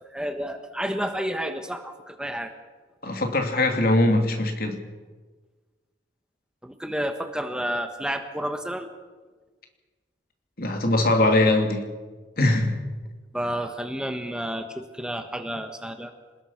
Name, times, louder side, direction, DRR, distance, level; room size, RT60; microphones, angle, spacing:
voice 1, 0.0-2.5 6.6-8.9 13.3-16.1, equal, 5° right, 1.3 m, -30 dB
voice 2, 3.0-4.8 10.6-11.9 12.4-12.8, left 2 dB, 55° left, 3.0 m, -21 dB
27.5 x 20.0 x 5.9 m
head